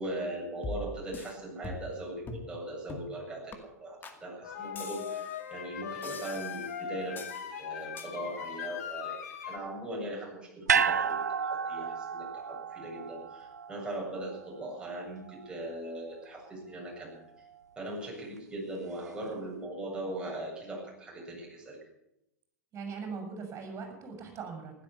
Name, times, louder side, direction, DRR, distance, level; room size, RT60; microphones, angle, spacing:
voice 1, 0.0-17.2 17.8-21.8, right 1 dB, 10° right, -2 dB, 7.9 m, -40 dB
sound 1, 0.6-1.3 1.6-2.0 2.3-2.5 2.9-3.2 3.5-3.6 4.0-4.2 4.8-5.4 6.0-6.7 7.2-7.5 8.0-8.1, left 2 dB, 20° left, 2.2 m, -42 dB
sound 2, 4.4-9.6, left 8 dB, 65° left, 2.3 m, -39 dB
sound 3, 10.7-15.0 15.3-15.4, right 6 dB, 80° right, 0.7 m, -31 dB
voice 2, 22.7-24.7, right 5 dB, 30° right, 4 dB, 7.3 m, -40 dB
16.0 x 12.5 x 7.1 m, 0.84 s
figure-of-eight pair, 95°, 9 cm